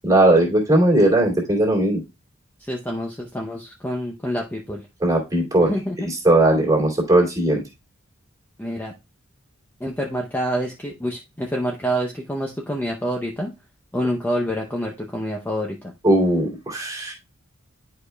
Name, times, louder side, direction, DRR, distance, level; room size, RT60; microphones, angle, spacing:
voice 1, 0.0-2.0 5.0-5.7 6.0-7.6 16.0-17.1, right 1 dB, 15° right, -2 dB, 2.5 m, -18 dB
voice 2, 2.6-4.8 5.6-6.1 8.6-8.9 9.8-13.5 13.9-15.8, equal, 10° left, -1 dB, 0.7 m, -27 dB
11.0 x 4.9 x 2.3 m, 0.24 s
head